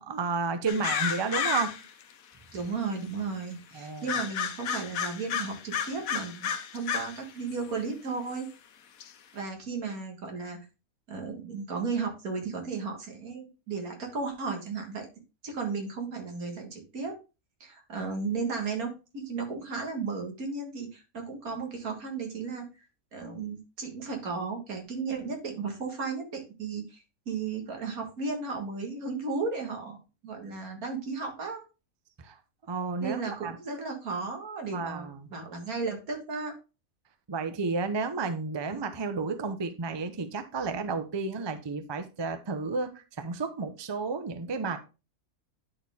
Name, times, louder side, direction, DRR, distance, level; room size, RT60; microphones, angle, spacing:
voice 1, 0.0-1.7 3.7-4.1 32.2-32.4 32.7-33.5 34.7-35.3 37.3-44.8, right 4 dB, 30° right, 0.5 m, -32 dB
sound 1, 0.7-2.0 2.6-2.7 4.1-7.2 7.5-7.6 8.4-8.5 9.0-9.1, left 7 dB, 75° left, 1.1 m, -31 dB
voice 2, 2.5-8.5 9.3-10.6 11.1-15.1 15.4-17.1 17.6-22.7 23.1-31.7 33.0-36.5 38.7-38.9, right 4 dB, 85° right, 2.2 m, -34 dB
9.9 x 4.3 x 3.5 m
omnidirectional pair, 1.5 m